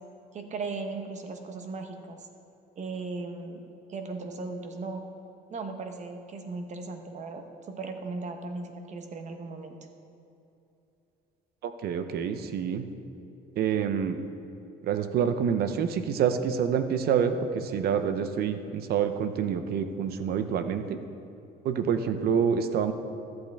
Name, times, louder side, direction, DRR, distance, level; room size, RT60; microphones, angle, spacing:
voice 1, 0.3-2.3 2.8-3.6 3.9-5.0 5.5-9.8, right 3 dB, 45° right, 5 dB, 1.0 m, -37 dB
voice 2, 11.6-12.8 13.6-14.2 14.8-21.0 21.6-22.9, right 7 dB, 65° right, 9 dB, 0.7 m, -27 dB
14.5 x 7.9 x 3.5 m, 2.8 s
cardioid pair, 110°, 17 cm